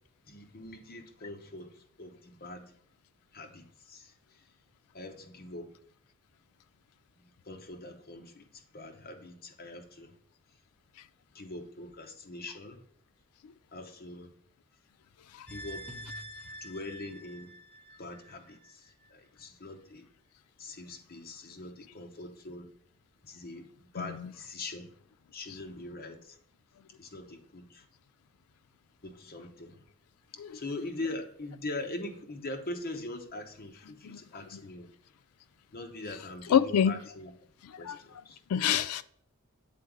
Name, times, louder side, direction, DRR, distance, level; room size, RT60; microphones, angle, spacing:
voice 1, 0.3-2.7 3.3-4.1 4.9-5.8 7.2-10.1 11.3-12.8 13.7-14.3 15.5-15.9 16.6-17.5 18.0-20.0 20.6-22.7 23.2-24.9 25.3-26.4 27.0-27.8 29.0-29.9 30.5-34.9 35.7-37.3 37.8-38.4, left 2 dB, 45° left, 0.8 m, -42 dB
dramtic synth+trumpet, 15.5-18.7 19.0-19.1, right 1 dB, 5° left, 0.6 m, -46 dB
voice 2, 24.0-24.3 30.4-30.5 34.0-34.2 36.5-37.0 37.8-38.0 38.5-39.0, left 8 dB, 80° left, 0.4 m, -26 dB
7.6 x 3.9 x 3.6 m
head